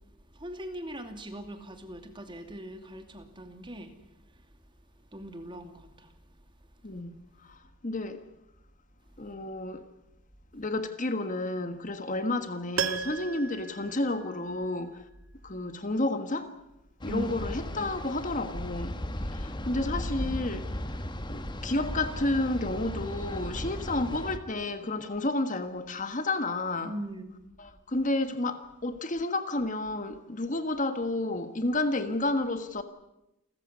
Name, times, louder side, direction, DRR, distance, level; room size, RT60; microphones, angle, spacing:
voice 1, 0.3-4.0 5.1-6.1 17.1-17.4 26.8-27.4, right 1 dB, 25° right, 2.7 m, -40 dB
voice 2, 7.4-8.2 9.2-9.8 10.5-15.0 15.4-16.5 17.0-19.0 19.3-20.7 21.3-26.9 27.6-32.8, left 2 dB, 35° left, 1.6 m, -31 dB
Piano, 12.8-14.8 15.1-15.2, right 7 dB, 85° right, 1.7 m, -35 dB
sound 1, 17.0-24.4, left 1 dB, 20° left, 1.4 m, -36 dB
29.0 x 14.5 x 9.8 m
head